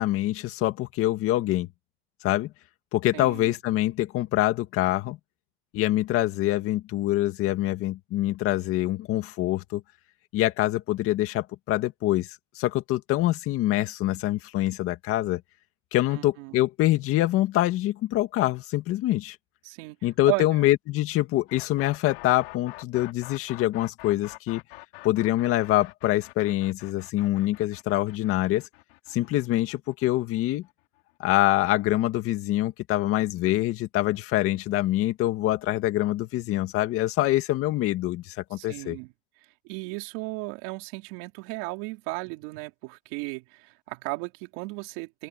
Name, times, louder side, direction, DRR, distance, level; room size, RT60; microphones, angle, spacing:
voice 1, 0.0-1.7 2.2-2.5 2.9-5.2 5.7-9.8 10.3-15.4 15.9-19.4 20.0-24.6 25.0-28.6 29.1-30.6 31.2-39.0, left 15 dB, 50° left, 2.0 m, -25 dB
voice 2, 3.1-3.5 16.1-16.6 19.6-20.6 38.6-39.1 39.6-45.3, right 25 dB, 70° right, 3.7 m, -35 dB
sound 1, 21.5-31.3, left 24 dB, 80° left, 3.1 m, -46 dB
open air
supercardioid pair, 130°, 29 cm